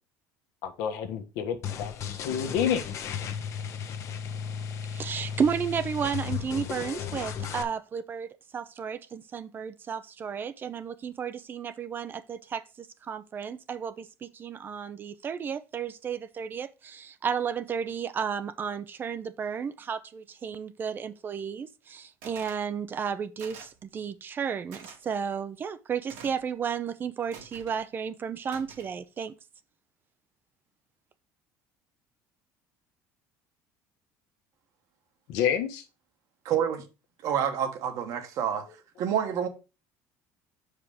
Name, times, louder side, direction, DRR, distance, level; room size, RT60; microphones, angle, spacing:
voice 1, 0.6-1.9 2.2-2.8 35.3-35.8, left 8 dB, 80° left, 1.4 m, -28 dB
sound 1, 1.6-7.6, left 7 dB, 50° left, 0.9 m, -35 dB
voice 2, 4.9-8.3 8.5-29.3, right 7 dB, 30° right, 0.5 m, -33 dB
sound 2, 22.2-22.6 23.4-23.8 24.7-25.0 26.1-26.5 27.3-27.8 28.5-29.0, right 6 dB, 85° right, 2.4 m, -47 dB
voice 3, 36.4-36.8 37.2-38.6 39.0-39.5, right 8 dB, 60° right, 1.5 m, -28 dB
6.1 x 4.9 x 5.0 m
cardioid pair, 125°, 6 cm